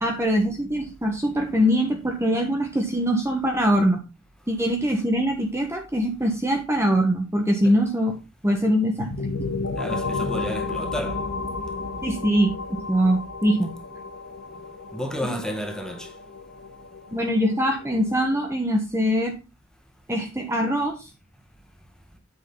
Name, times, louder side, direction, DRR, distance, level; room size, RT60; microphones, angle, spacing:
voice 1, 0.0-4.0 4.5-8.2 8.4-9.1 12.0-13.7 17.1-19.4 20.1-21.1, equal, 15° right, 1.4 m, -23 dB
sound 1, 9.0-18.6, left 3 dB, 80° left, 1.5 m, -33 dB
voice 2, 9.7-11.2 14.9-16.1, equal, 5° left, 1.6 m, -31 dB
8.8 x 6.6 x 3.9 m
head